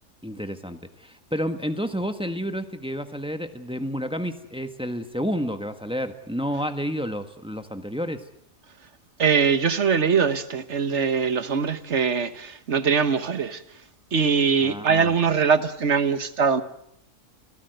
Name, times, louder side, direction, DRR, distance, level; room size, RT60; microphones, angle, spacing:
voice 1, 0.2-8.3 14.6-15.1, equal, 5° right, 1.4 m, -30 dB
voice 2, 9.2-13.6 14.1-16.6, right 6 dB, 55° right, 1.5 m, -22 dB
29.0 x 18.5 x 8.0 m
omnidirectional pair, 1.5 m